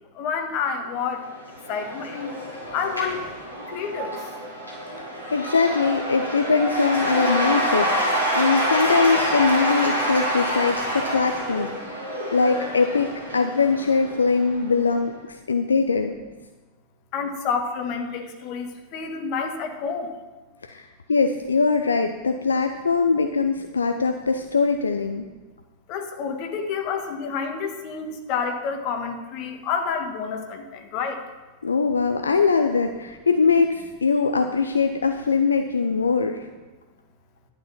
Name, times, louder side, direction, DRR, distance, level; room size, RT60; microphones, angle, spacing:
voice 1, 0.2-1.2 1.7-2.3 2.7-3.2 3.7-4.2 14.1-14.2 17.1-20.1 25.9-31.2, left 6 dB, 40° left, 5 dB, 1.6 m, -29 dB
Cheering / Applause / Crowd, 1.2-14.7, equal, 85° right, 4.8 m, -27 dB
voice 2, 5.1-16.1 20.6-25.3 31.6-36.5, left 4 dB, 75° left, 6 dB, 0.6 m, -22 dB
11.5 x 9.1 x 5.7 m, 1.2 s
figure-of-eight pair, 90°, 0 cm